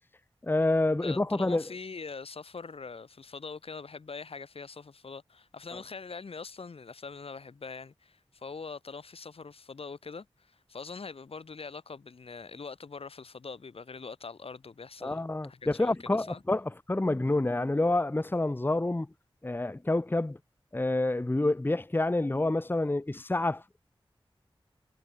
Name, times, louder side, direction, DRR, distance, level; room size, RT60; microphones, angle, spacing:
voice 1, 0.4-1.6 15.0-19.1 19.4-20.4 20.7-23.6, left 2 dB, 20° left, 0.8 m, -28 dB
voice 2, 1.0-16.4, left 4 dB, 85° left, 1.7 m, -43 dB
wide cardioid pair, 70°, 10 cm